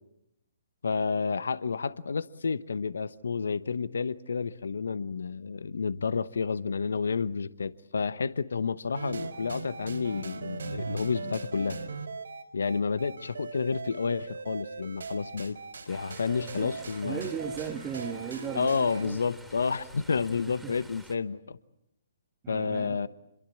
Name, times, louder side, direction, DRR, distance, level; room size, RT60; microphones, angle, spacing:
voice 1, 0.8-11.8 12.5-15.6 15.9-17.3 18.5-21.6 22.5-23.1, left 5 dB, 75° left, 1.0 m, -30 dB
sound 1, 8.9-19.1, right 4 dB, 75° right, 4.1 m, -39 dB
sound 2, 15.9-21.2, right 1 dB, 5° right, 3.1 m, -52 dB
voice 2, 17.0-19.2 20.6-20.7 22.4-23.1, right 8 dB, 20° right, 1.7 m, -37 dB
27.0 x 22.5 x 8.6 m
hypercardioid pair, 135°, 0 cm